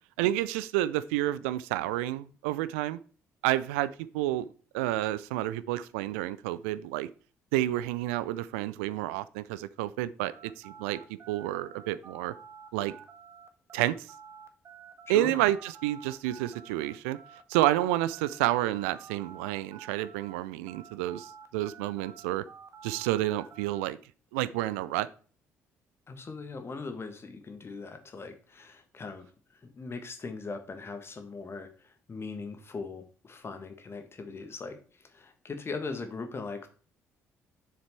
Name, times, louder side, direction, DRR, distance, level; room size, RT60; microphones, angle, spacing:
voice 1, 0.2-3.0 3.4-4.4 4.7-7.1 7.5-11.0 11.3-12.3 12.7-12.9 13.7-14.1 15.1-17.2 17.5-22.4 22.8-24.0 24.3-25.1, right 15 dB, 70° right, 17 dB, 0.4 m, -29 dB
sound 1, 10.2-20.4 20.7-23.9, right 7 dB, 35° right, 1.3 m, -50 dB
voice 2, 15.1-15.4 26.1-29.3 29.5-36.7, left 4 dB, 30° left, 7 dB, 1.7 m, -40 dB
6.8 x 6.5 x 4.4 m, 0.40 s
figure-of-eight pair, 45°, 8 cm